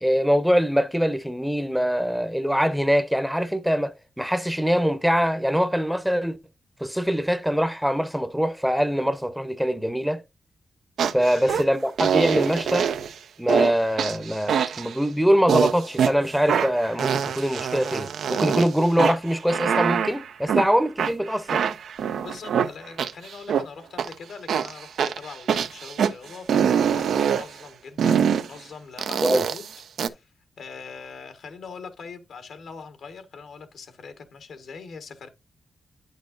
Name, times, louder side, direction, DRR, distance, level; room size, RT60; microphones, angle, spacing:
voice 1, 0.0-6.4 6.8-10.2 11.1-12.9 13.4-21.6 29.2-29.5, equal, ahead, 0.7 m, -23 dB
sound 1, 11.0-11.6 12.0-13.1 13.5-13.7 14.0-15.0 15.5-16.1 16.5-18.7 19.0-20.7 21.0-23.6 24.0-24.1 24.5-26.1 26.5-27.5 28.0-28.5 29.0-30.1, right 7 dB, 90° right, 0.4 m, -24 dB
voice 2, 11.2-11.6 22.1-29.7 30.0-30.3 30.6-35.3, left 5 dB, 85° left, 1.4 m, -42 dB
9.1 x 6.4 x 2.5 m
cardioid pair, 90°, 0 cm